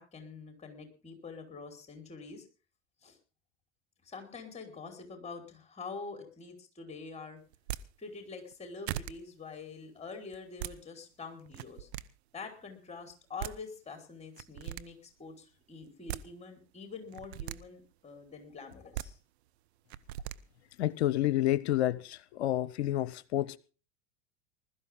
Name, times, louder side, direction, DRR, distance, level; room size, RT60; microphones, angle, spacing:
voice 1, 0.0-2.4 3.0-3.2 4.0-7.4 8.0-11.9 12.3-19.2, left 4 dB, 20° left, 5.1 m, -46 dB
sound 1, 7.5-7.8 8.5-8.6 8.9-9.1 10.3-10.7 11.5-12.0 13.1-13.2 13.4-13.5 14.4-14.8 15.8-16.2 17.1-17.6 18.7-19.1 19.9-20.4, right 12 dB, 65° right, 0.9 m, -38 dB
voice 2, 20.8-23.6, left 13 dB, 65° left, 0.8 m, -29 dB
20.5 x 13.0 x 3.8 m
figure-of-eight pair, 85°, 35 cm